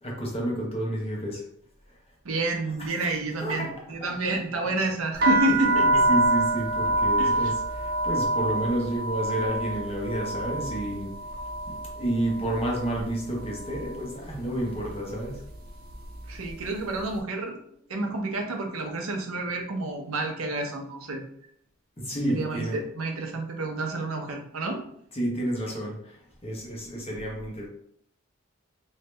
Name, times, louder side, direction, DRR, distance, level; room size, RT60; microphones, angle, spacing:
voice 1, 0.0-1.4 2.8-2.9 3.4-3.7 4.0-4.7 5.7-11.1 11.7-15.4 22.0-22.8 25.1-27.7, right 1 dB, 30° left, -2 dB, 0.9 m, -30 dB
voice 2, 2.2-6.0 7.2-7.5 16.3-17.6 17.9-21.2 22.3-24.8, right 2 dB, 80° right, 3 dB, 0.7 m, -29 dB
sound 1, 5.1-13.1 13.3-14.0 14.6-14.9 15.2-16.6, right 2 dB, 50° right, 0.7 m, -26 dB
3.2 x 2.7 x 3.2 m, 0.68 s
head